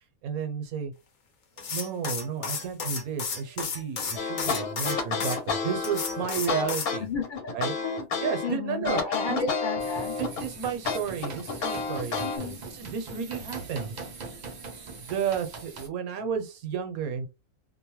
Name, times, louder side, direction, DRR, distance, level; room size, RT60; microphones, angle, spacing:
voice 1, 0.2-0.9 1.7-7.1 7.5-7.7 8.2-9.0 9.3-9.4 10.2-13.9 15.0-17.3, right 7 dB, 75° right, 1.1 m, -32 dB
sound 1, 1.6-5.4 5.8-6.9, left 6 dB, 65° left, 1.1 m, -33 dB
sound 2, 4.2-8.5 8.8-10.5 10.9-12.4, left 5 dB, 90° left, 1.3 m, -30 dB
voice 2, 7.0-10.2 12.2-12.6, left 4 dB, 45° left, 0.7 m, -33 dB
sound 3, 9.8-15.9, right 4 dB, 55° right, 0.5 m, -41 dB
2.7 x 2.1 x 2.9 m
omnidirectional pair, 1.5 m